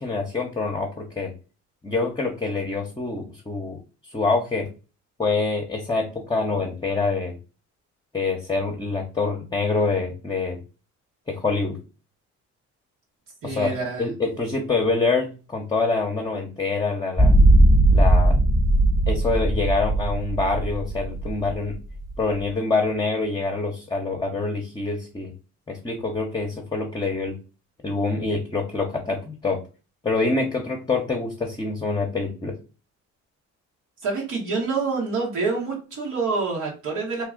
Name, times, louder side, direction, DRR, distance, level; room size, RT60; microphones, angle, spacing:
voice 1, 0.0-1.3 1.8-3.8 4.1-4.7 5.2-7.3 8.1-10.6 11.3-11.8 13.4-17.3 17.9-18.4 19.1-21.8 22.2-25.3 25.7-27.4 27.8-29.6 30.0-32.6, left 3 dB, 15° left, 0 dB, 0.7 m, -25 dB
voice 2, 13.4-14.1 34.0-37.3, right 4 dB, 85° right, -3 dB, 1.3 m, -27 dB
sound 1, 17.2-22.4, right 1 dB, 10° right, 0.9 m, -18 dB
2.9 x 2.3 x 3.7 m, 0.33 s
cardioid pair, 90°, 30 cm